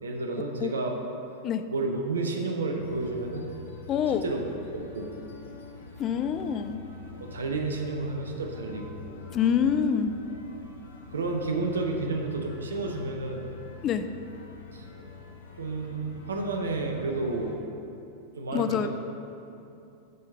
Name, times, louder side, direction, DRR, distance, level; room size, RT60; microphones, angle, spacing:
voice 1, 0.0-0.9 1.7-3.5 4.1-4.4 4.7-5.1 7.2-9.0 11.1-13.5 14.7-14.9 15.6-17.5 18.4-18.9, right 3 dB, 70° right, 2 dB, 0.8 m, -31 dB
sound 1, 2.8-17.5, left 5 dB, 65° left, 0.9 m, -45 dB
voice 2, 3.9-4.2 6.0-6.8 9.3-10.1 13.8-14.1 18.5-18.9, left 8 dB, 30° left, 9 dB, 0.3 m, -26 dB
7.5 x 3.8 x 5.4 m, 2.7 s
figure-of-eight pair, 90°, 0 cm